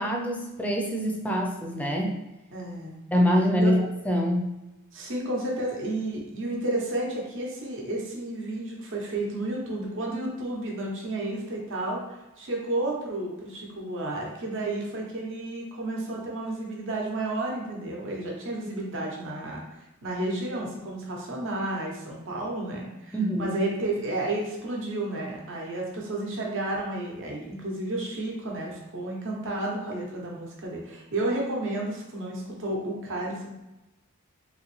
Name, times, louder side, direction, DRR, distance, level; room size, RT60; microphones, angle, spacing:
voice 1, 0.0-2.2 3.1-3.8 4.1-4.5 23.1-23.5, equal, 5° left, 1 dB, 0.4 m, -24 dB
voice 2, 2.5-3.0 3.6-3.7 4.9-33.5, right 2 dB, 60° right, -2 dB, 0.9 m, -32 dB
3.7 x 2.9 x 3.1 m, 0.99 s
head